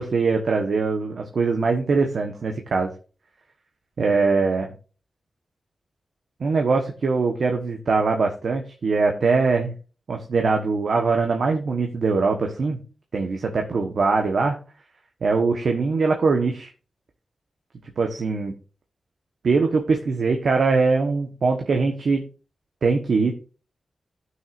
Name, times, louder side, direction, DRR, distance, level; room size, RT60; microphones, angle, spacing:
voice 1, 0.0-2.9 4.0-4.7 6.4-9.7 10.1-12.8 13.1-14.6 15.2-16.7 18.0-18.5 19.4-22.2 22.8-23.3, right 4 dB, 75° right, 3 dB, 1.3 m, -22 dB
16.0 x 6.3 x 2.6 m, 0.36 s
wide cardioid pair, 75°, 0 cm